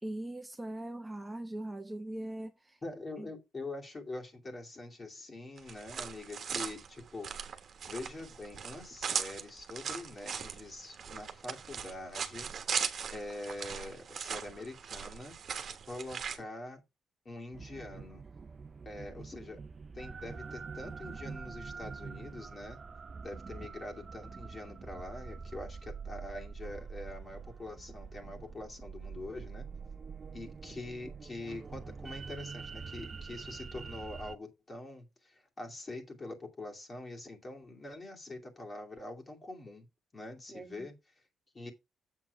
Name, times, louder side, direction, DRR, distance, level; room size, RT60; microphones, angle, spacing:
voice 1, 0.0-2.8 3.2-3.3 40.5-40.9, right 1 dB, 10° right, 0.9 m, -41 dB
voice 2, 2.8-7.3 7.9-12.5 13.1-15.4 15.9-16.8 17.2-18.2 18.8-19.6 19.9-22.8 23.2-29.7 30.3-39.9 40.1-40.9 41.5-41.7, left 2 dB, 30° left, 2.5 m, -44 dB
sound 1, 5.6-16.4, right 7 dB, 50° right, 1.2 m, -39 dB
sound 2, 17.5-34.3, right 5 dB, 35° right, 0.5 m, -45 dB
7.7 x 5.8 x 4.7 m
cardioid pair, 90°, 0 cm